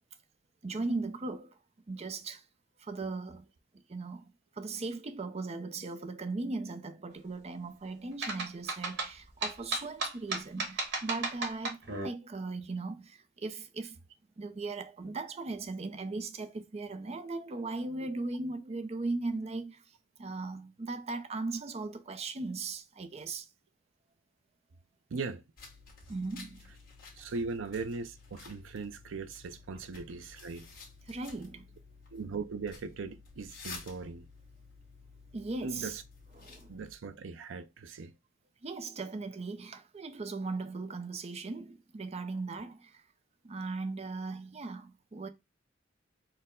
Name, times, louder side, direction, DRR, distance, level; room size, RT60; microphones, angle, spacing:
voice 1, 0.6-1.6 1.9-2.4 2.8-3.5 3.9-14.0 14.4-19.8 20.2-23.5 26.1-26.6 31.1-31.7 35.3-36.0 36.4-36.7 38.6-43.0 43.4-45.3, right 3 dB, 35° right, 0.5 m, -38 dB
sound 1, 8.2-12.1, right 3 dB, 65° right, 1.2 m, -34 dB
voice 2, 25.1-25.4 27.1-30.7 32.1-34.3 35.6-36.0 36.7-38.1, right 4 dB, 90° right, 0.5 m, -39 dB
sound 2, 25.6-36.9, left 4 dB, 50° left, 1.5 m, -52 dB
4.4 x 2.1 x 3.6 m
head